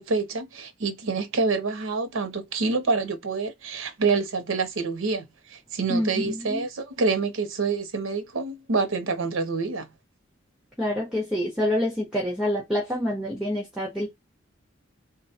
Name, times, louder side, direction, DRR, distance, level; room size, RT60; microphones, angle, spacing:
voice 1, 0.0-5.2 5.5-9.9, right 4 dB, 85° right, 0.8 m, -27 dB
voice 2, 5.9-6.6 10.8-14.2, left 1 dB, 5° right, 1.2 m, -27 dB
3.8 x 2.2 x 2.8 m
head